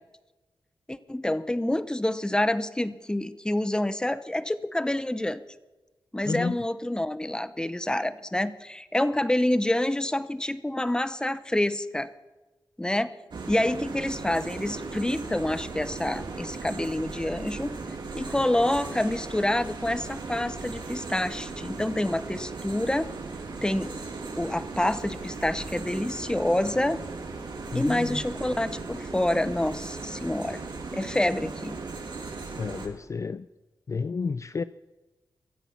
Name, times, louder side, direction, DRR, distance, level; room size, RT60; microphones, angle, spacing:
voice 1, 0.9-5.4 6.1-12.1 12.8-13.1 13.5-17.7 18.1-23.1 23.6-24.0 24.4-27.0 27.7-30.6 30.9-31.7, left 1 dB, 10° left, 14 dB, 0.8 m, -27 dB
voice 2, 6.2-6.6 27.7-28.2 32.6-33.5 33.9-34.6, left 4 dB, 40° left, 14 dB, 0.4 m, -31 dB
sound 1, 13.3-32.9, right 3 dB, 65° right, 2.6 m, -37 dB
24.0 x 8.2 x 5.9 m, 1.1 s
cardioid pair, 75°, 8 cm